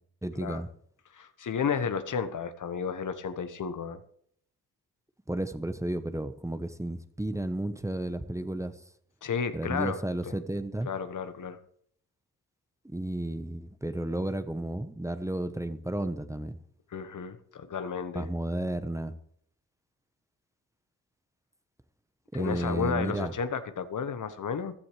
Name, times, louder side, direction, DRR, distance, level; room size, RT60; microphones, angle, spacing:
voice 1, 0.2-0.7 5.3-8.8 9.5-10.9 12.8-16.6 18.1-19.2 22.3-23.3, right 1 dB, 10° right, 10 dB, 1.1 m, -32 dB
voice 2, 1.1-4.0 9.2-10.0 10.9-11.6 16.9-18.3 22.3-24.7, left 6 dB, 55° left, 11 dB, 1.2 m, -32 dB
15.0 x 11.5 x 3.3 m, 0.64 s
supercardioid pair, 50°, 37 cm